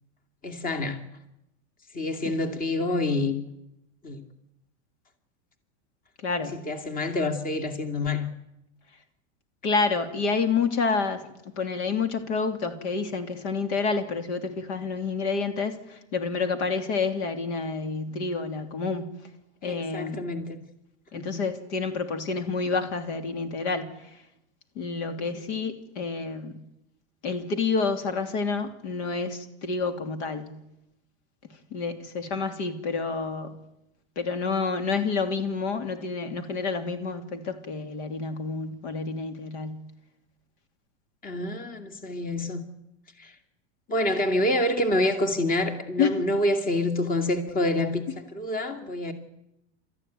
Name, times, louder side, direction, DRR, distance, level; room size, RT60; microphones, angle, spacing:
voice 1, 0.4-1.0 1.9-3.4 4.0-4.2 6.5-8.3 19.6-20.6 21.1-21.4 25.3-25.5 41.2-42.6 43.2-43.3 43.9-49.1, left 1 dB, 25° left, 2.4 m, -27 dB
voice 2, 6.2-6.5 9.6-11.2 11.6-19.0 19.6-20.2 21.1-23.9 24.8-26.6 27.2-30.5 31.7-33.5 34.2-39.8 46.0-46.1, left 4 dB, 80° left, 3.1 m, -28 dB
29.0 x 14.0 x 9.3 m
supercardioid pair, 130°, 34 cm